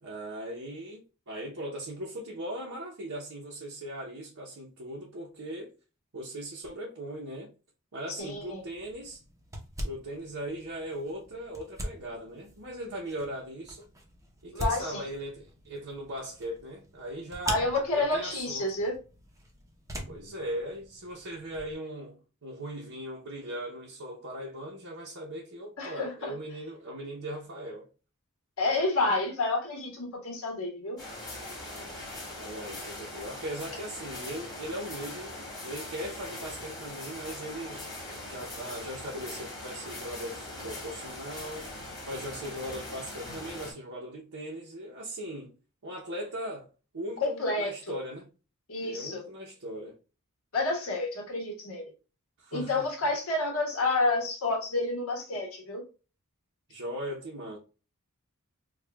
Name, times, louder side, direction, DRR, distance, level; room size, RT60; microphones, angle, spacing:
voice 1, 0.0-5.7 6.1-7.5 7.9-9.2 9.8-13.9 14.4-17.6 17.9-18.6 20.1-27.9 32.4-35.3 35.6-37.9 38.3-41.7 42.0-45.5 45.8-46.7 46.9-48.3 48.8-49.9 52.4-52.8 56.7-57.6, right 1 dB, 70° right, 0.9 m, -39 dB
voice 2, 8.1-8.6 14.5-15.0 17.4-19.0 25.8-26.3 28.6-31.0 47.2-48.0 48.7-49.2 50.5-51.8 52.5-55.8, left 2 dB, 70° left, 1.5 m, -29 dB
sound 1, 8.2-21.7, equal, 15° right, 0.7 m, -42 dB
sound 2, 31.0-43.7, left 1 dB, 20° left, 1.6 m, -41 dB
4.8 x 2.4 x 2.3 m
head